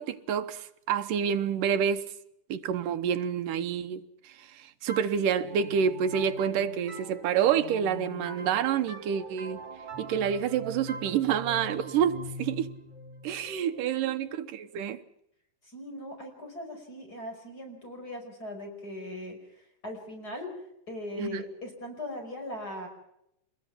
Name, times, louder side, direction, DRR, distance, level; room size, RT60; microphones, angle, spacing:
voice 1, 0.0-2.0 2.5-9.6 10.0-12.7 13.2-15.0 21.2-21.4, right 8 dB, 80° right, 2.7 m, -28 dB
sound 1, 4.9-14.4, right 1 dB, 55° right, 6.0 m, -42 dB
voice 2, 15.7-20.5 20.9-22.9, left 1 dB, 25° left, 5.7 m, -39 dB
27.5 x 21.0 x 5.9 m
omnidirectional pair, 3.8 m